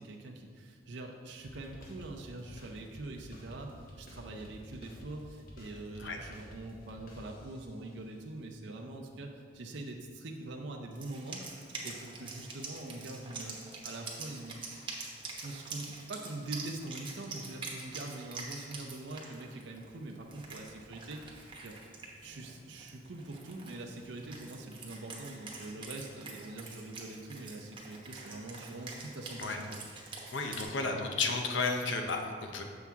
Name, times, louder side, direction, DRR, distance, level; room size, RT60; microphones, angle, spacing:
voice 1, 0.0-11.4 11.8-14.6 15.4-21.8 22.2-29.8, right 2 dB, 65° right, 2 dB, 0.6 m, -44 dB
sound 1, 1.4-7.8, equal, 50° left, 1.2 m, -51 dB
Wind instrument woodwind instrument, 10.9-30.6, right 3 dB, 25° right, 1.0 m, -46 dB
voice 2, 30.3-32.6, left 3 dB, 75° left, 3 dB, 0.7 m, -32 dB
7.1 x 5.8 x 3.5 m, 2.1 s
head